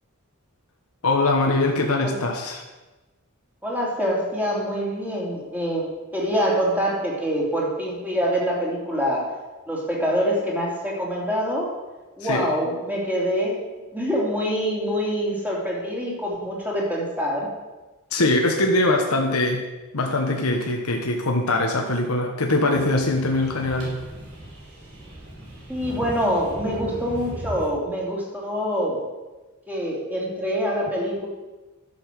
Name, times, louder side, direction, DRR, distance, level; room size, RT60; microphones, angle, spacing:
voice 1, 1.0-2.6 12.3-12.4 18.1-19.6 19.9-24.0, left 2 dB, 80° left, 2 dB, 1.2 m, -22 dB
voice 2, 3.6-9.4 9.7-11.7 12.2-13.6 13.9-17.5 25.7-29.0 29.7-31.3, equal, 10° right, -4 dB, 3.0 m, -25 dB
sound 1, 22.7-27.7, right 1 dB, 75° right, 3.6 m, -37 dB
11.5 x 7.0 x 6.4 m, 1.2 s
head